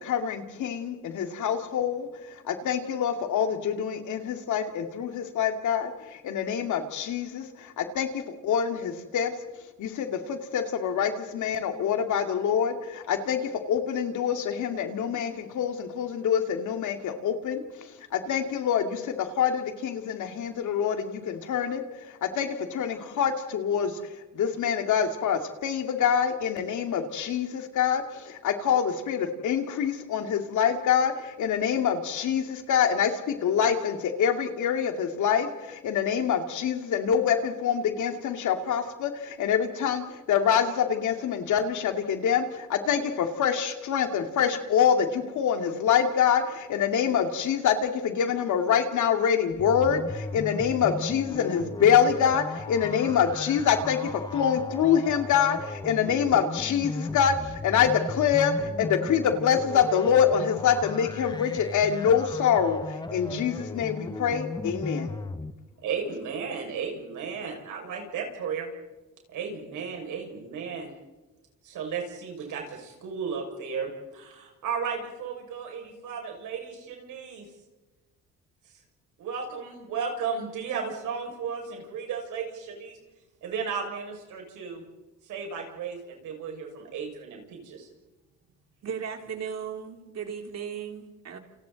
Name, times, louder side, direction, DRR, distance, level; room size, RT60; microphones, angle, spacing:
voice 1, 0.0-9.3 9.8-65.1, left 8 dB, 75° left, 6 dB, 2.5 m, -26 dB
sound 1, 49.5-65.5, left 2 dB, 15° left, 1.1 m, -36 dB
voice 2, 65.8-68.7 69.3-70.9 71.6-77.5 79.2-83.0 83.4-84.8 85.2-87.9, right 6 dB, 80° right, 1 dB, 6.3 m, -34 dB
voice 3, 88.8-91.4, right 7 dB, 60° right, 4 dB, 3.6 m, -36 dB
29.0 x 28.5 x 4.1 m, 1.1 s
cardioid pair, 90°, 30 cm